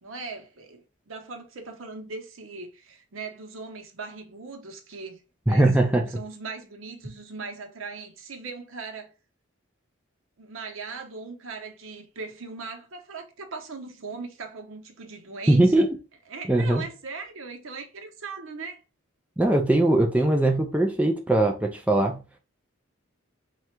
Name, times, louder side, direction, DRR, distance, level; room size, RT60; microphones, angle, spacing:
voice 1, 0.0-5.2 5.5-9.1 10.4-15.9 16.3-18.8, right 4 dB, 80° right, 0.8 m, -39 dB
voice 2, 5.5-6.1 15.5-15.9 16.5-16.8 19.4-22.2, right 1 dB, 5° right, 0.4 m, -20 dB
3.2 x 2.4 x 4.4 m
head